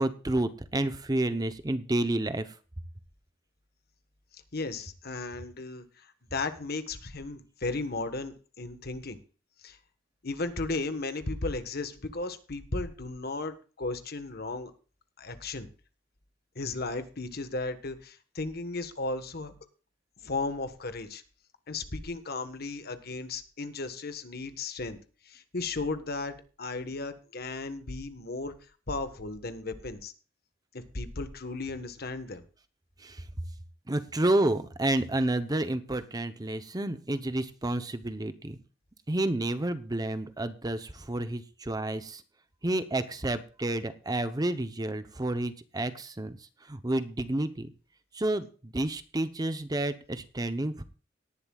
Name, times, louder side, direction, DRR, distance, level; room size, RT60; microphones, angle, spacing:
voice 1, 0.0-2.5 33.0-33.2 33.9-38.6 39.1-42.2 42.6-46.4 46.7-47.7 48.1-50.8, right 1 dB, 20° right, 11 dB, 0.8 m, -30 dB
voice 2, 4.5-9.2 9.6-9.8 10.2-14.7 15.2-15.7 16.5-19.5 20.2-21.2 21.7-25.0 25.2-28.5 28.9-30.1 30.7-32.4, left 3 dB, 55° left, 9 dB, 1.3 m, -35 dB
18.5 x 11.0 x 2.4 m, 0.36 s
head